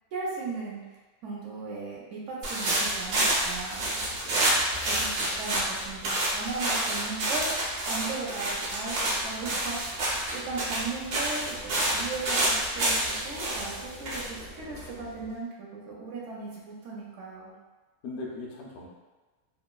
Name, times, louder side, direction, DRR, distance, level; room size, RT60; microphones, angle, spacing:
voice 1, 0.1-0.8 1.2-4.1 4.9-10.0 10.3-17.5, right 3 dB, 70° right, -4 dB, 0.8 m, -37 dB
sound 1, 2.4-15.2, right 1 dB, 90° right, 1.2 m, -29 dB
voice 2, 4.2-4.6 18.0-18.9, left 2 dB, 65° left, -3 dB, 0.7 m, -39 dB
3.0 x 2.2 x 2.3 m, 1.3 s
omnidirectional pair, 1.6 m